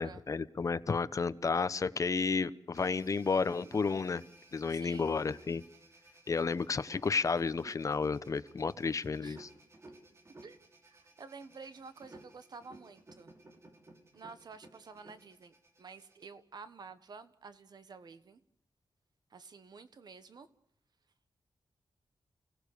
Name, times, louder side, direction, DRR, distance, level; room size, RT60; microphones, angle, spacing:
voice 1, 0.0-4.2 4.5-5.6 6.3-9.5, left 4 dB, 40° left, 15 dB, 0.9 m, -32 dB
sound 1, 2.7-16.3, right 2 dB, 30° right, 3.3 m, -57 dB
voice 2, 4.7-5.2 9.2-9.4 10.4-13.3 14.1-18.4 19.3-20.5, right 5 dB, 55° right, 12 dB, 1.3 m, -51 dB
29.5 x 18.0 x 6.8 m, 0.70 s
wide cardioid pair, 150°, 8 cm